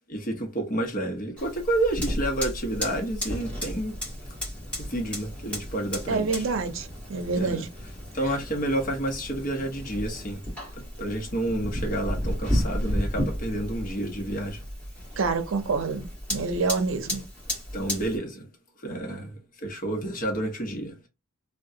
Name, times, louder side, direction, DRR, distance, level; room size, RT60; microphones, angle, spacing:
voice 1, 0.1-4.0 4.8-6.4 7.3-7.6 8.1-10.5 10.8-14.6 17.7-18.5 18.8-21.1, right 1 dB, 45° left, 1.0 m, -30 dB
Fire, 1.4-18.2, equal, 5° left, 1.9 m, -33 dB
voice 2, 6.1-7.7 15.2-17.2, right 4 dB, 75° right, 0.6 m, -27 dB
3.4 x 2.2 x 2.7 m
head